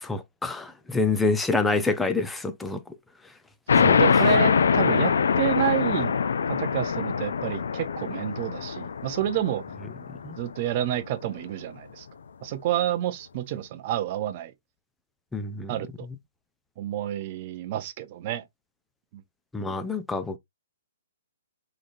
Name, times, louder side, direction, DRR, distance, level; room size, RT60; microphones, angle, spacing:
voice 1, 0.0-2.8 3.8-4.2 10.2-10.3 15.3-15.7 19.5-20.4, left 3 dB, 5° left, 0.4 m, -27 dB
sound 1, 3.7-10.8, left 6 dB, 75° left, 0.5 m, -23 dB
voice 2, 3.8-6.1 6.5-9.6 10.4-12.1 12.4-14.5 15.7-15.9 16.8-18.4 19.1-19.2, right 12 dB, 30° right, 0.6 m, -29 dB
3.9 x 3.2 x 2.6 m
hypercardioid pair, 165°, 0 cm